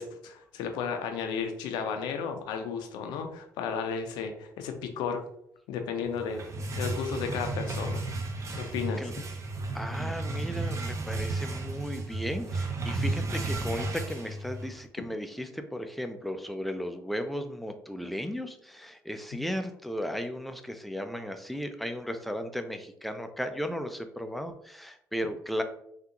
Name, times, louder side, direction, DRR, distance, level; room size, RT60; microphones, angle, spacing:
voice 1, 0.0-5.2 5.7-6.4 6.8-8.0 8.5-9.0, left 6 dB, 85° left, 6 dB, 0.5 m, -33 dB
sound 1, 6.1-14.8, right 2 dB, 45° right, 0.6 m, -33 dB
voice 2, 9.7-25.6, equal, ahead, 7 dB, 0.4 m, -35 dB
3.6 x 2.4 x 2.8 m, 0.72 s
supercardioid pair, 75°, 7 cm